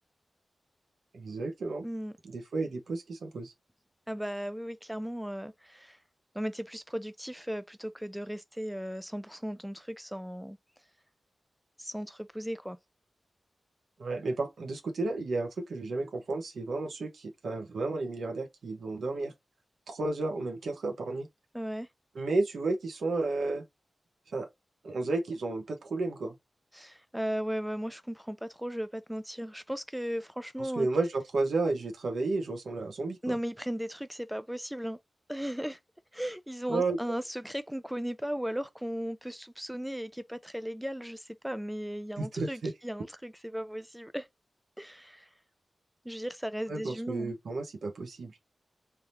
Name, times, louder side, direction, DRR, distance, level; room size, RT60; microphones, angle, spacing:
voice 1, 1.1-1.9 2.2-3.5 14.0-19.3 19.9-21.3 22.1-23.6 24.3-24.5 24.8-26.3 30.6-33.4 36.7-37.0 42.2-42.7 46.7-48.3, right 3 dB, 90° right, 1.1 m, -32 dB
voice 2, 4.1-6.0 6.3-10.6 11.8-12.8 21.5-21.9 26.7-30.9 33.2-35.0 35.3-35.8 36.1-44.3 44.8-45.3 46.1-47.3, equal, 5° right, 0.3 m, -36 dB
3.5 x 2.9 x 2.8 m
wide cardioid pair, 85°, 0 cm